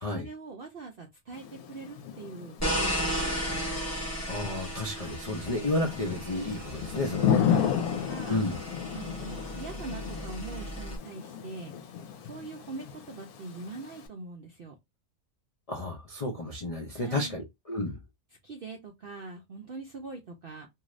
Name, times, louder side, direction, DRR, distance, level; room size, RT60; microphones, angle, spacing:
voice 1, 0.1-3.6 7.4-8.4 8.9-11.7 12.2-14.8 16.9-17.4 18.4-20.7, right 3 dB, 65° right, 0.5 m, -42 dB
Thunder / Rain, 1.3-14.1, left 8 dB, 75° left, 1.1 m, -34 dB
sound 1, 2.6-11.0, equal, 15° left, 0.8 m, -35 dB
voice 2, 4.3-7.4 8.3-8.6 15.7-18.0, left 2 dB, 50° left, 0.4 m, -32 dB
2.7 x 2.5 x 3.0 m
omnidirectional pair, 1.6 m